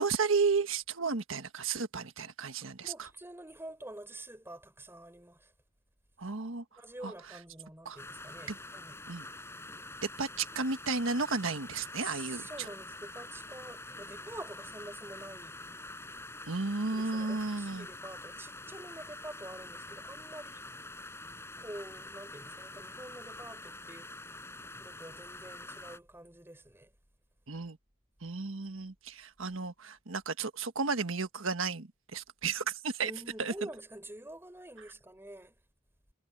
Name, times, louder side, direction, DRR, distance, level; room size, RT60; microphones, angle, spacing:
voice 1, 0.0-3.1 6.2-6.6 7.0-7.1 7.8-8.0 8.5-8.6 9.1-9.3 10.2-12.7 16.5-17.9 27.5-27.8 28.2-33.1 33.4-33.5, right 4 dB, 70° right, 1.4 m, -33 dB
voice 2, 2.8-5.5 6.8-9.0 12.0-15.5 16.9-20.7 21.6-24.1 24.8-26.9 33.0-35.6, right 1 dB, 10° right, 3.9 m, -47 dB
sound 1, 8.0-26.0, left 2 dB, 10° left, 5.9 m, -46 dB
head